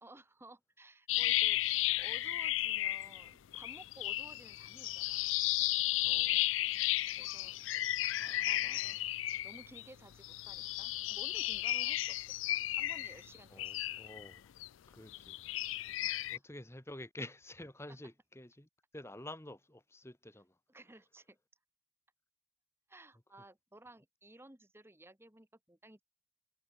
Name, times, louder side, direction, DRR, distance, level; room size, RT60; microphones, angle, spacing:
voice 1, 0.0-1.6 2.0-5.4 7.2-8.8 9.4-12.2 12.5-13.7 16.0-16.2 20.7-21.4 22.9-26.0, right 1 dB, 10° right, 1.5 m, -56 dB
sound 1, 1.1-3.3 3.5-9.8 10.2-14.7 15.1-16.4, left 16 dB, 75° left, 0.4 m, -34 dB
voice 2, 6.0-6.4 8.2-9.1 13.5-14.4 14.9-15.4 16.3-20.6, left 1 dB, 15° left, 1.8 m, -49 dB
head